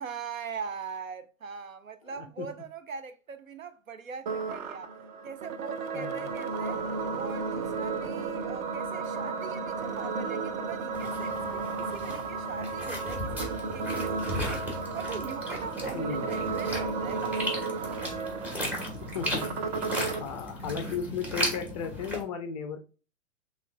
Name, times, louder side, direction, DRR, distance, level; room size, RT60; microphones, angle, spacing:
voice 1, 0.0-4.9 5.2-6.8 7.1-14.7 14.9-17.4, right 6 dB, 85° right, 0.7 m, -41 dB
voice 2, 2.1-2.5 5.9-6.3 15.9-16.3 19.0-19.6 19.9-22.8, left 6 dB, 30° left, 0.4 m, -36 dB
sound 1, 4.3-20.3, right 4 dB, 35° right, 0.6 m, -33 dB
sound 2, 10.9-22.2, left 1 dB, 5° right, 1.2 m, -36 dB
6.6 x 2.4 x 2.3 m
figure-of-eight pair, 110°, 40 cm